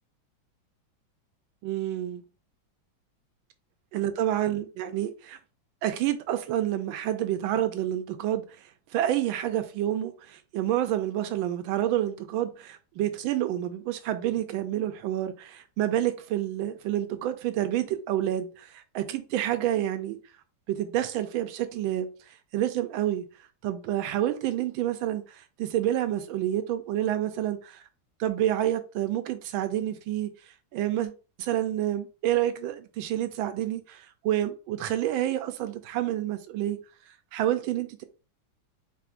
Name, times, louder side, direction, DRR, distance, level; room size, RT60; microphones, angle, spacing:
voice 1, 1.6-2.2 3.9-5.4 5.8-8.4 8.9-20.2 20.7-22.1 22.5-23.2 23.6-27.8 28.2-30.3 30.7-31.1 31.4-36.8 37.3-38.0, right 12 dB, 85° right, 1.4 m, -28 dB
4.8 x 3.2 x 2.5 m
omnidirectional pair, 2.2 m